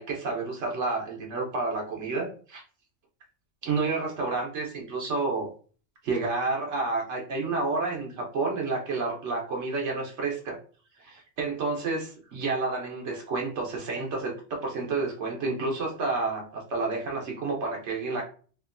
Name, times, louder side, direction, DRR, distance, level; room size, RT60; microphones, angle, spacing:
voice 1, 0.0-2.6 3.6-5.5 6.0-10.6 11.0-18.2, right 3 dB, 70° right, 0 dB, 1.0 m, -30 dB
2.8 x 2.4 x 2.4 m, 0.41 s
omnidirectional pair, 1.3 m